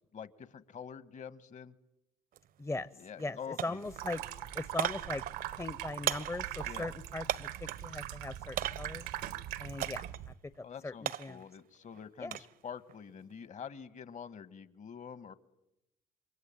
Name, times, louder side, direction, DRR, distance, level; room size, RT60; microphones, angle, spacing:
voice 1, 0.1-1.7 3.0-3.8 6.7-6.9 10.6-15.3, left 7 dB, 50° left, 14 dB, 1.8 m, -46 dB
sound 1, 2.3-2.5 2.8-3.3 3.6-7.9 8.6-9.1 9.8-10.2 10.6-12.5 12.9-13.3, right 11 dB, 60° right, 1.1 m, -38 dB
voice 2, 2.6-4.2 4.5-5.2 5.6-9.1 9.6-11.5 12.2-12.4, left 2 dB, 15° left, 15 dB, 1.0 m, -40 dB
Water tap faucet / Sink (filling or washing), 3.9-10.3, right 12 dB, 80° right, 1.5 m, -41 dB
28.0 x 23.0 x 9.1 m, 0.87 s
hypercardioid pair, 60°, 16 cm